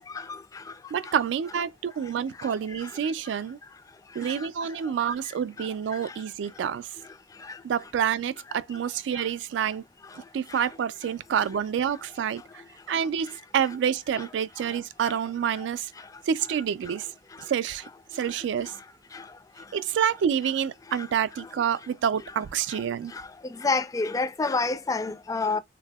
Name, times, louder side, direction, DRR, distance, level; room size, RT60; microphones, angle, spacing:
voice 1, 0.9-3.6 4.1-6.9 7.6-9.8 10.2-12.4 12.9-15.9 16.3-17.1 17.4-17.8 18.1-18.7 19.7-23.1, right 8 dB, 80° right, 0.3 m, -28 dB
voice 2, 23.5-25.6, left 3 dB, 20° left, 0.3 m, -27 dB
3.3 x 2.7 x 2.2 m
head